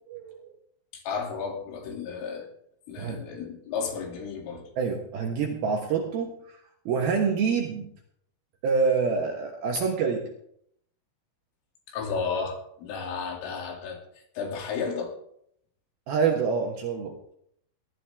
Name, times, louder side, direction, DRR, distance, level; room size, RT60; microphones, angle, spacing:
voice 1, 0.1-0.4 3.0-3.2 4.8-6.3 6.9-7.9 8.6-10.3 16.1-17.3, right 5 dB, 65° right, 1 dB, 2.5 m, -26 dB
voice 2, 0.9-2.5 2.9-4.7 11.9-14.0 14.4-15.1, left 5 dB, 75° left, 1 dB, 5.3 m, -33 dB
19.0 x 12.5 x 3.6 m, 0.69 s
omnidirectional pair, 6.0 m